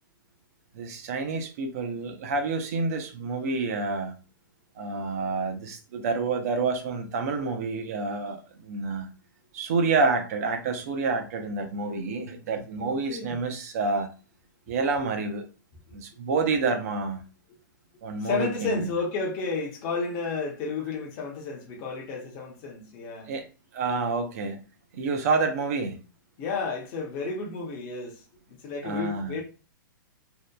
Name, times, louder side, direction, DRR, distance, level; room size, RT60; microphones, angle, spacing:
voice 1, 0.7-4.1 4.8-9.1 9.5-14.1 14.7-15.5 15.9-17.2 18.0-18.9 23.3-23.4 23.7-24.6 24.9-26.0 28.8-29.4, right 4 dB, 45° right, 0.5 m, -28 dB
voice 2, 12.8-13.4 18.2-23.3 26.4-29.4, left 4 dB, 25° left, 0.6 m, -32 dB
2.7 x 2.1 x 2.2 m
hypercardioid pair, 160°, 11 cm